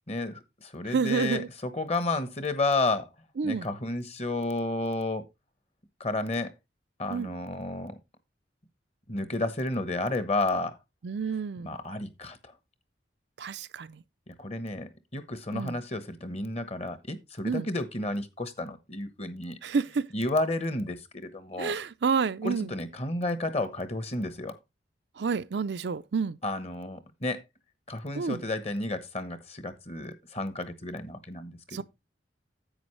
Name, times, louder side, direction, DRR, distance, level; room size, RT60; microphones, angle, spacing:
voice 1, 0.1-3.1 3.4-5.2 6.0-6.5 7.0-8.0 9.1-10.8 11.6-12.5 14.3-19.6 20.1-21.7 22.4-24.6 26.4-27.4 27.9-31.8, left 2 dB, 35° left, 1.1 m, -32 dB
voice 2, 0.9-1.5 3.4-3.7 7.1-7.3 11.0-11.7 13.4-14.0 15.5-15.8 17.4-17.7 19.6-20.1 21.6-22.7 25.2-26.4 28.2-28.4 31.7-31.8, right 5 dB, 65° right, 0.5 m, -29 dB
10.5 x 8.2 x 3.2 m
head